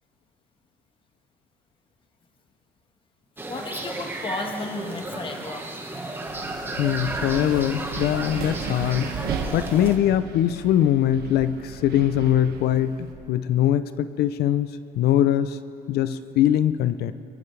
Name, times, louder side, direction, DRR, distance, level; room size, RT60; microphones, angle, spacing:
sound 1, 3.4-10.0, right 2 dB, 15° right, 1.5 m, -33 dB
voice 1, 3.5-5.7 6.1-6.2, left 2 dB, 30° left, 3 dB, 1.4 m, -33 dB
Wind, 6.3-13.1, right 6 dB, 70° right, 1.6 m, -35 dB
voice 2, 6.8-9.2 9.5-14.7 15.0-15.6 15.9-17.1, left 11 dB, 70° left, 13 dB, 0.6 m, -22 dB
23.0 x 14.0 x 3.3 m, 2.5 s
cardioid pair, 110°, 17 cm